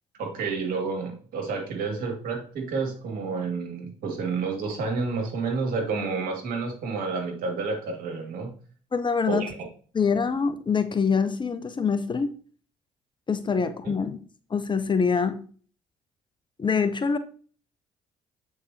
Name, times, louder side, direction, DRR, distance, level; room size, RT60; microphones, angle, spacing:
voice 1, 0.2-8.5 9.3-9.6 13.8-13.9, right 4 dB, 65° right, 2.1 m, -30 dB
voice 2, 8.9-9.5 9.9-12.3 13.3-14.2 14.5-15.4 16.6-17.2, left 5 dB, 30° left, 0.8 m, -25 dB
8.1 x 4.9 x 2.8 m
hypercardioid pair, 50°, 16 cm